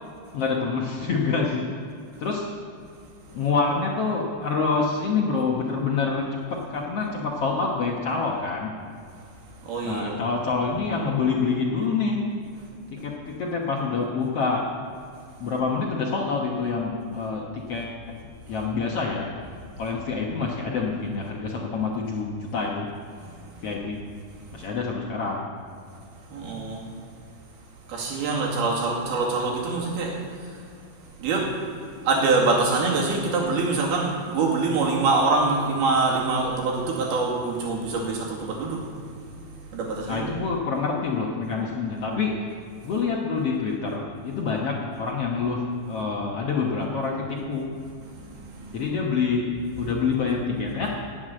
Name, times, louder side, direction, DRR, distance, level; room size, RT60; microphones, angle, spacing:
voice 1, 0.3-1.7 2.2-2.5 3.3-8.8 9.8-12.3 12.9-14.8 15.4-18.2 18.5-19.3 19.8-22.9 23.6-24.1 24.5-25.5 40.1-42.6 42.8-47.7 48.7-51.0, left 4 dB, 65° left, -1 dB, 1.5 m, -27 dB
voice 2, 9.6-10.2 26.3-26.8 27.9-30.5 31.2-31.5 32.1-38.8 39.7-40.3 48.2-48.7, right 3 dB, 85° right, -2 dB, 4.3 m, -24 dB
19.0 x 8.1 x 7.6 m, 2.4 s
omnidirectional pair, 4.3 m